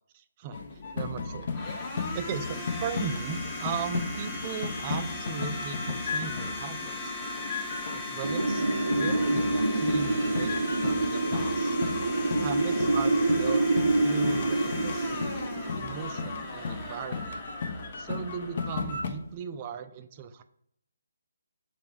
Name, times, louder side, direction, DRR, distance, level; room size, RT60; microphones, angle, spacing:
voice 1, 0.1-0.6 0.9-1.7 2.1-7.2 7.9-11.8 12.4-13.6 14.0-15.3 15.7-17.4 18.0-20.4, right 8 dB, 30° right, 10 dB, 0.3 m, -38 dB
sound 1, 0.5-8.1 8.4-19.1, left 4 dB, 55° left, 0.6 m, -35 dB
Domestic sounds home sounds, 0.5-19.4, left 2 dB, 20° left, 0.8 m, -38 dB
Wind, 8.2-16.9, right 2 dB, 80° right, 0.6 m, -27 dB
5.6 x 2.6 x 3.4 m, 0.71 s
hypercardioid pair, 155°, 0 cm